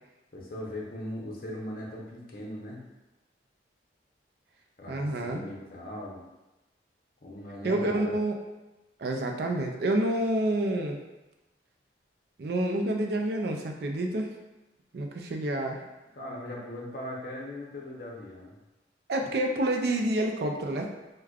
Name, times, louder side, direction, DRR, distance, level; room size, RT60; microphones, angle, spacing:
voice 1, 0.3-2.8 4.8-6.2 7.2-8.1 16.1-18.6, left 1 dB, 50° left, -3 dB, 0.7 m, -39 dB
voice 2, 4.9-5.4 7.6-8.4 9.0-11.0 12.4-14.4 14.9-15.8 19.1-20.9, right 1 dB, 60° right, 3 dB, 0.4 m, -28 dB
4.8 x 2.2 x 2.3 m, 1.1 s
head